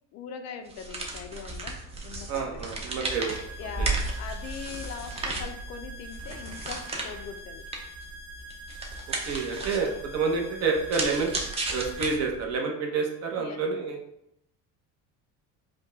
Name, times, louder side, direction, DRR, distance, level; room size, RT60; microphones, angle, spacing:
voice 1, 0.1-2.7 3.6-7.6 13.4-13.6, left 7 dB, 50° left, 6 dB, 0.4 m, -41 dB
sound 1, 0.7-12.5, right 2 dB, 20° right, 0.6 m, -35 dB
voice 2, 2.3-3.3 3.8-3.9 9.3-11.3 11.7-14.0, right 4 dB, 45° right, 2 dB, 0.9 m, -28 dB
sound 2, 3.1-12.1, equal, 85° right, 0.8 m, -45 dB
5.2 x 2.3 x 3.8 m, 0.80 s
cardioid pair, 155°, 34 cm